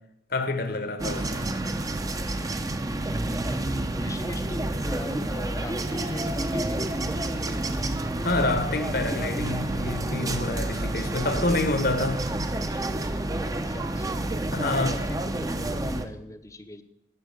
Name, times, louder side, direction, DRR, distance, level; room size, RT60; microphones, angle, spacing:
voice 1, 0.3-1.5 8.2-12.3 12.6-12.9 14.5-15.0, left 2 dB, 55° left, 1.2 m, -28 dB
sound 1, 1.0-16.0, right 1 dB, 20° right, 0.7 m, -29 dB
voice 2, 3.4-7.2 13.5-14.2 14.6-16.8, left 1 dB, 15° left, 0.7 m, -39 dB
11.0 x 8.9 x 6.8 m
head